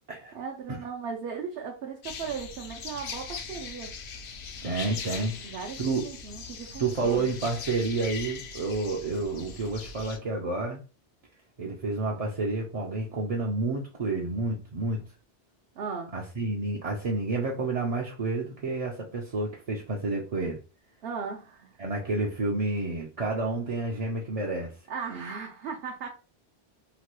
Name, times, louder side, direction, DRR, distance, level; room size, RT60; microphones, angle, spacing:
voice 1, 0.3-3.9 5.4-7.3 15.8-16.1 21.0-21.7 24.9-26.1, right 6 dB, 65° right, 0.8 m, -37 dB
sound 1, 2.0-10.2, left 5 dB, 75° left, 0.8 m, -40 dB
voice 2, 4.6-5.3 5.8-6.0 6.8-10.8 11.6-15.0 16.1-20.6 21.8-24.7, right 3 dB, 45° right, 0.5 m, -30 dB
2.9 x 2.2 x 3.0 m
omnidirectional pair, 1.1 m